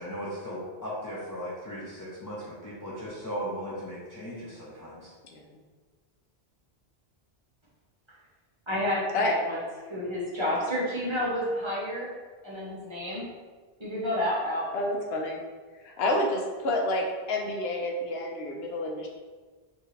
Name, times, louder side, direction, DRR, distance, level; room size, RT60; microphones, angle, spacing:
voice 1, 0.0-5.1, equal, 25° left, -7 dB, 0.6 m, -37 dB
voice 2, 8.7-9.6 9.9-12.1 12.4-13.2 13.8-14.7, left 1 dB, 30° right, -6 dB, 1.1 m, -30 dB
voice 3, 14.7-15.4 15.8-16.4 16.6-19.1, left 1 dB, 75° left, 0 dB, 0.8 m, -28 dB
4.6 x 2.8 x 3.2 m, 1.4 s
omnidirectional pair, 1.1 m